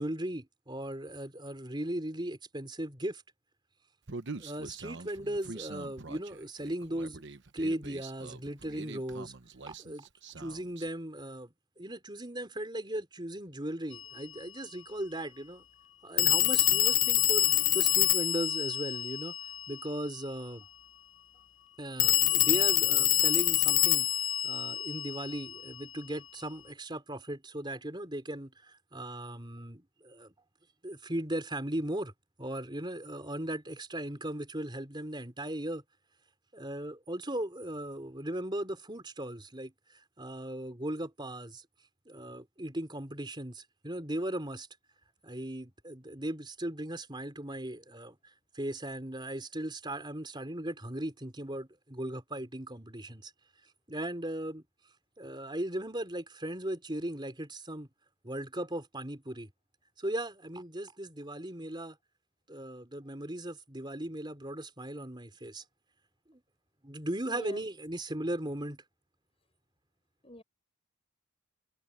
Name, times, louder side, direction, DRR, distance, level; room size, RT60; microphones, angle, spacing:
voice 1, 0.0-3.2 4.4-7.2 7.5-9.3 9.7-10.1 10.4-15.6 16.0-20.6 21.8-24.1 24.4-30.3 30.8-32.1 32.4-35.8 36.5-41.6 42.1-44.7 45.2-53.3 53.9-54.6 55.2-57.9 58.2-59.5 60.0-62.0 62.5-65.6 66.3-66.4 66.8-68.8, right 1 dB, 20° right, 4.4 m, -37 dB
Human voice, 4.1-10.9, right 3 dB, 55° right, 1.1 m, -45 dB
Telephone, 13.9-14.1 16.2-19.9 22.0-25.7, left 14 dB, 65° left, 0.8 m, -26 dB
voice 2, 67.3-67.6 70.2-70.4, left 1 dB, 25° left, 5.7 m, -45 dB
head